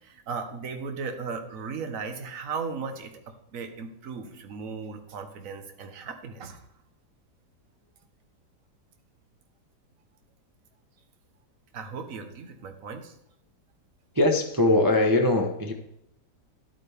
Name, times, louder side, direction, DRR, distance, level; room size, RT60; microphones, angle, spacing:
voice 1, 0.0-6.6 11.7-13.2, right 5 dB, 50° right, 7 dB, 1.4 m, -36 dB
voice 2, 14.1-15.7, left 2 dB, 30° right, 2 dB, 0.3 m, -21 dB
11.5 x 9.0 x 3.4 m, 0.83 s
omnidirectional pair, 1.9 m